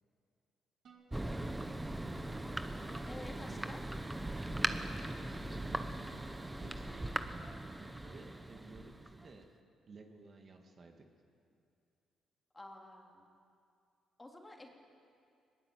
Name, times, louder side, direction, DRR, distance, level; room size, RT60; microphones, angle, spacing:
sound 1, 0.8-8.5, right 4 dB, 60° right, 2.9 m, -57 dB
Thunder, 1.1-9.4, right 1 dB, 10° right, 1.1 m, -40 dB
voice 1, 3.1-3.8 12.5-13.3 14.2-14.7, left 1 dB, 15° left, 1 dB, 3.2 m, -51 dB
voice 2, 5.4-6.2 6.6-7.2 8.0-9.5 9.9-11.1, right 3 dB, 45° right, 3 dB, 2.2 m, -55 dB
21.0 x 20.0 x 7.8 m, 2.5 s
cardioid pair, 90°, 0 cm